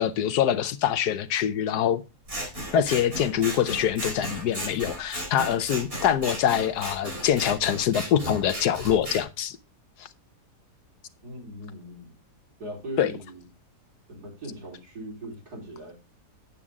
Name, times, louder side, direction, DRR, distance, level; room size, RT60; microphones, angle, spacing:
voice 1, 0.0-2.0 2.7-9.6 10.0-10.1 13.0-13.1, left 9 dB, 75° left, 1.3 m, -24 dB
Scissors, 2.3-9.2, right 1 dB, 35° right, 4.3 m, -35 dB
voice 2, 11.2-12.1 12.6-13.4 14.1-15.9, right 1 dB, 70° right, 4.6 m, -39 dB
8.9 x 8.4 x 3.5 m
omnidirectional pair, 1.8 m